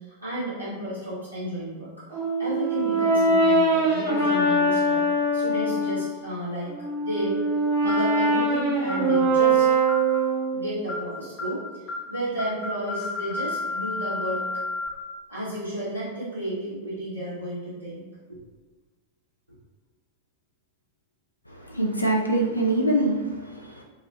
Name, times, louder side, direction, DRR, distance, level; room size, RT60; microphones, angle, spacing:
voice 1, 0.1-1.9 2.4-5.0 5.3-6.7 7.0-7.5 7.8-9.7 10.5-11.6 12.1-14.4 15.3-18.0 18.3-18.4, right 1 dB, 85° right, -12 dB, 0.9 m, -32 dB
Brass instrument, 2.1-6.1 6.6-10.7, right 2 dB, 60° right, 0.6 m, -22 dB
sound 1, 7.9-8.2 8.9-9.1 9.9-10.2 10.9-11.1 11.4-11.6 11.9-12.1 12.4-14.9, left 3 dB, 30° left, 0.5 m, -32 dB
voice 2, 21.5-23.8, right 1 dB, 85° left, -1 dB, 0.3 m, -24 dB
2.4 x 2.3 x 2.3 m, 1.3 s
figure-of-eight pair, 90°, 0 cm